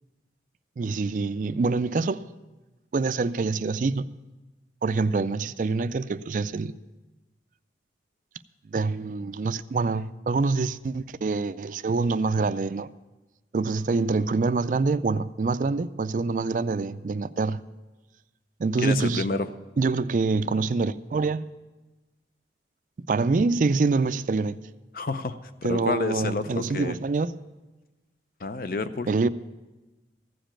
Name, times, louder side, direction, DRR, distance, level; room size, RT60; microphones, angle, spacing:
voice 1, 0.8-2.2 2.9-4.1 4.8-6.7 8.7-12.9 13.5-17.6 18.6-19.3 19.8-21.5 23.1-24.6 25.6-27.3 29.1-29.3, right 3 dB, 45° right, 0.3 m, -25 dB
voice 2, 18.8-19.5 24.9-27.0 28.4-29.1, left 3 dB, 50° left, 0.5 m, -29 dB
15.0 x 5.1 x 8.8 m
head